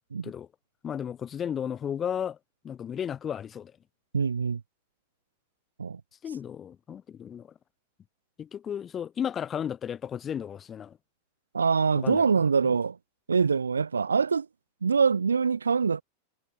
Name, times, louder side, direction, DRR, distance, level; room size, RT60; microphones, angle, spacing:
voice 1, 0.8-2.4 2.6-3.7 6.2-7.5 8.4-11.0 12.0-12.2, left 8 dB, 25° left, 6.3 m, -34 dB
voice 2, 4.1-4.6 5.8-6.0 11.5-13.0 13.3-14.5 14.8-16.0, right 5 dB, 75° right, 0.6 m, -24 dB
figure-of-eight pair, 90°, 0 cm